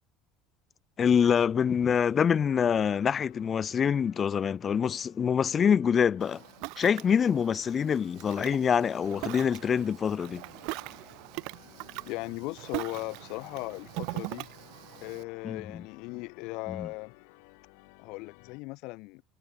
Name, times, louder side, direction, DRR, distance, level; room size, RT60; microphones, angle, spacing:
voice 1, 1.0-6.4 6.8-10.4 15.4-15.8 16.7-16.9, left 7 dB, 20° left, 0.4 m, -25 dB
sound 1, 1.6-18.6, left 36 dB, 75° left, 5.5 m, -56 dB
Ocean, 6.2-15.2, right 27 dB, 60° right, 0.7 m, -41 dB
voice 2, 12.1-14.5 15.0-17.1 18.0-19.2, left 25 dB, 55° left, 1.0 m, -38 dB
cardioid pair, 170°, 0 cm